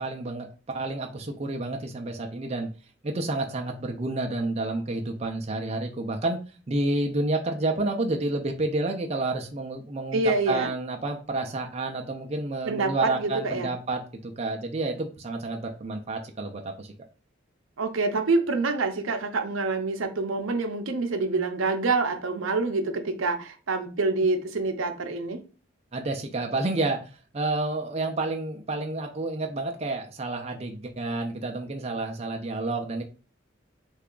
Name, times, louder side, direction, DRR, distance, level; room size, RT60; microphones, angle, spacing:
voice 1, 0.0-2.7 3.0-6.4 6.7-16.9 25.9-33.0, right 2 dB, 30° right, 0.4 m, -30 dB
voice 2, 10.1-10.7 12.6-13.7 17.8-25.4, right 3 dB, 75° right, 0.6 m, -26 dB
3.4 x 2.3 x 3.7 m
head